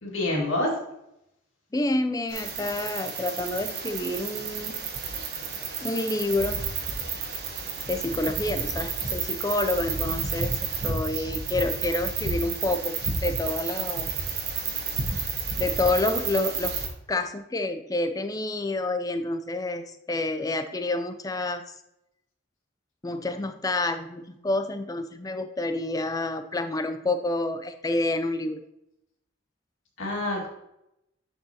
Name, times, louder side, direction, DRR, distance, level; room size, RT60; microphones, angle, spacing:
voice 1, 0.0-0.7 30.0-30.5, left 1 dB, 80° left, -3 dB, 2.3 m, -27 dB
voice 2, 1.7-4.8 5.8-6.6 7.9-14.1 15.6-16.7 17.1-21.6 23.0-28.6, left 2 dB, 20° left, 9 dB, 0.4 m, -28 dB
sound 1, 2.3-16.9, right 5 dB, 50° right, 1.1 m, -31 dB
10.0 x 4.7 x 2.9 m, 0.84 s
head